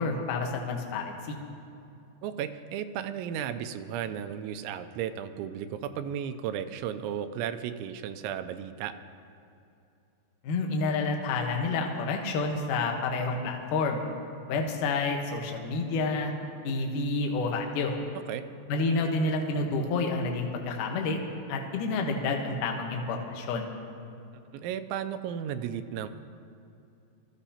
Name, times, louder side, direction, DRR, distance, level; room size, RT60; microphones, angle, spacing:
voice 1, 0.0-1.4 10.4-14.1 14.5-16.3 16.6-18.0 18.7-21.2 21.5-23.7, left 3 dB, 70° left, 2 dB, 2.1 m, -29 dB
voice 2, 2.2-8.9 18.3-18.4 24.5-26.1, right 9 dB, 85° right, 9 dB, 2.9 m, -34 dB
23.5 x 14.0 x 2.9 m, 2.6 s
omnidirectional pair, 5.2 m